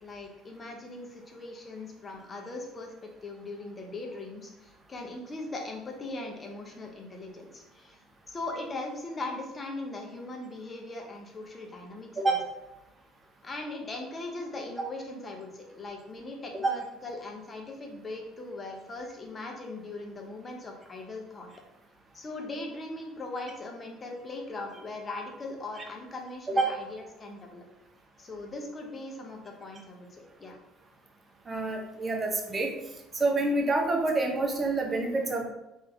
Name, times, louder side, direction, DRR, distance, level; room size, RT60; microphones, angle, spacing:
voice 1, 0.0-2.9 3.2-8.0 8.3-12.4 13.4-21.5 22.1-27.6 28.2-30.6, left 2 dB, 30° left, 2 dB, 0.9 m, -40 dB
voice 2, 31.5-32.7 33.2-35.4, right 2 dB, 30° right, 1 dB, 0.8 m, -27 dB
3.3 x 2.7 x 3.4 m, 0.91 s
figure-of-eight pair, 55°, 0 cm